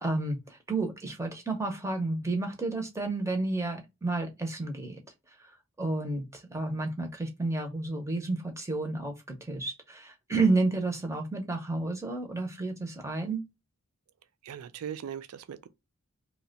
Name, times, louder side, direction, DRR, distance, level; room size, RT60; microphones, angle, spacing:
voice 1, 0.0-5.0 5.4-5.5 5.8-13.4, right 2 dB, 15° right, 0.5 m, -31 dB
voice 2, 14.4-15.7, right 8 dB, 90° right, 0.4 m, -39 dB
2.7 x 2.1 x 3.8 m
head